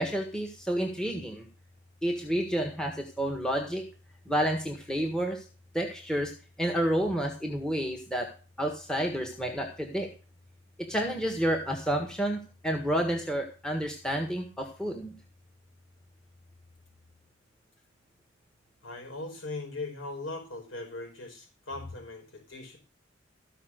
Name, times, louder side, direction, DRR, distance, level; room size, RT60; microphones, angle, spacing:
voice 1, 0.0-1.4 2.0-3.8 4.3-5.4 5.7-6.3 6.6-8.3 8.6-10.1 10.8-15.1, right 1 dB, 5° left, 3 dB, 1.5 m, -30 dB
voice 2, 18.8-22.8, left 2 dB, 85° left, 3 dB, 5.1 m, -39 dB
14.0 x 5.7 x 6.5 m, 0.35 s
head